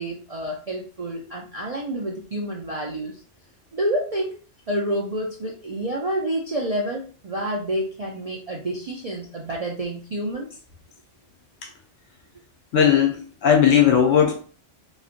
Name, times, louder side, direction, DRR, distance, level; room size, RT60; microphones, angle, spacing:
voice 1, 0.0-3.1 3.7-4.3 4.7-10.5, right 1 dB, 60° right, 0.4 m, -28 dB
voice 2, 12.7-14.4, left 8 dB, 90° left, 1.1 m, -17 dB
3.1 x 2.6 x 2.4 m
omnidirectional pair, 1.3 m